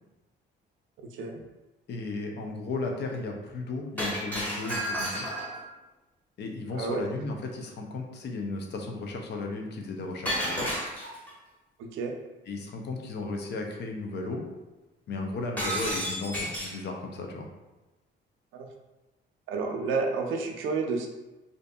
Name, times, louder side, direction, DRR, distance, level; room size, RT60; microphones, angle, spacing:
voice 1, 1.9-5.3 6.4-10.7 12.5-14.4 15.1-17.5, left 3 dB, 60° left, 2 dB, 0.5 m, -35 dB
Shatter, 4.0-5.6 10.3-11.3 15.6-16.8, equal, 10° left, 1.0 m, -31 dB
voice 2, 11.8-12.1 18.5-18.7 19.5-21.1, right 4 dB, 85° right, 3 dB, 0.4 m, -30 dB
2.6 x 2.5 x 2.2 m, 1.1 s
cardioid pair, 90°, 20 cm